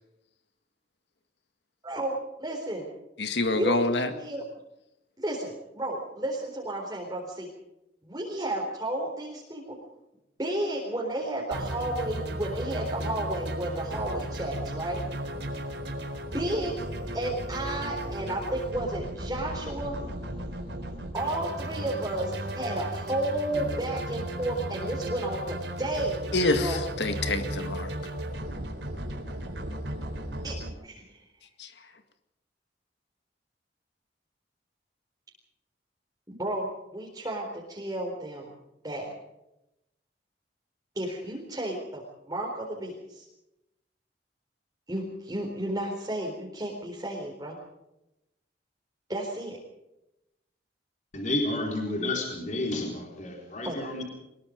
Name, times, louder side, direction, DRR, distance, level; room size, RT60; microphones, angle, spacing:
voice 1, 1.8-2.9 3.5-3.7 4.1-4.4 5.2-7.5 8.0-9.8 10.4-15.0 16.3-16.7 17.1-20.0 21.1-26.8 30.4-30.6 30.8-31.2 36.3-38.5 38.8-39.1 40.9-43.2 44.9-47.6 49.1-49.6 53.6-54.0, right 1 dB, 20° right, -2 dB, 4.1 m, -32 dB
voice 2, 3.2-4.1 26.3-27.9 31.6-31.7, left 2 dB, 70° left, 8 dB, 2.0 m, -26 dB
sound 1, 11.5-30.7, right 1 dB, 75° right, 4.2 m, -35 dB
voice 3, 51.1-54.0, left 2 dB, 45° left, 1 dB, 4.3 m, -30 dB
23.0 x 21.5 x 5.3 m, 0.89 s
head